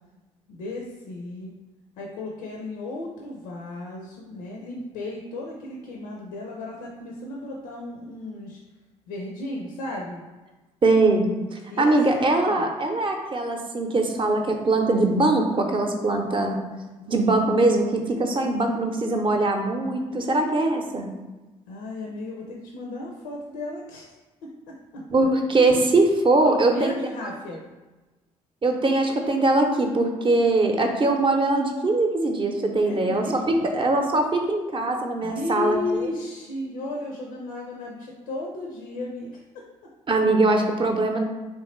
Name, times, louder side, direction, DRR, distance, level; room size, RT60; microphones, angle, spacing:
voice 1, 0.5-1.5 2.0-8.6 9.1-10.2 11.7-12.0 12.5-12.7 17.0-17.3 21.7-25.0 26.5-27.6 32.8-33.7 35.2-39.6, left 2 dB, 75° left, -1 dB, 0.5 m, -34 dB
voice 2, 10.8-16.6 17.1-21.1 25.1-26.9 28.6-33.4 33.7-35.8 40.1-41.2, right 2 dB, 30° right, 3 dB, 0.7 m, -22 dB
3.5 x 3.2 x 3.1 m, 1.2 s
hypercardioid pair, 50°, 16 cm